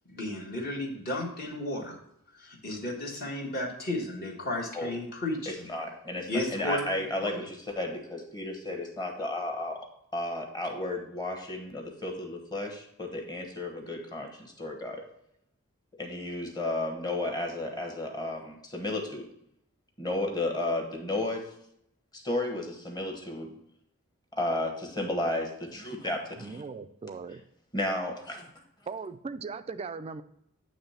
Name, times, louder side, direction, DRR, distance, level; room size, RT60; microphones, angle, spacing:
voice 1, 0.1-2.0 2.4-5.5 6.3-6.9 7.2-7.3, left 1 dB, 45° left, -2 dB, 1.3 m, -33 dB
voice 2, 5.5-9.8 10.1-15.0 16.0-19.3 20.0-21.5 22.1-23.5 24.3-26.6 27.7-28.5, left 2 dB, 20° left, 3 dB, 1.1 m, -33 dB
voice 3, 26.4-27.4 28.9-30.2, right 4 dB, 30° right, 11 dB, 0.3 m, -38 dB
8.9 x 3.2 x 5.5 m, 0.75 s
head